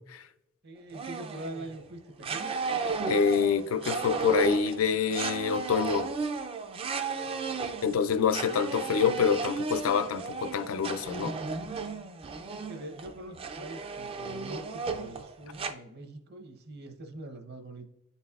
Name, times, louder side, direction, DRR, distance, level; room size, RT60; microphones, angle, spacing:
voice 1, 0.6-2.5 7.2-7.4 12.4-17.9, right 1 dB, 50° right, 0.8 m, -43 dB
sound 1, 0.9-1.8 2.2-15.7, right 4 dB, 25° right, 0.3 m, -34 dB
voice 2, 3.0-6.1 7.8-11.3, left 6 dB, 80° left, 0.4 m, -26 dB
10.0 x 4.1 x 2.3 m
head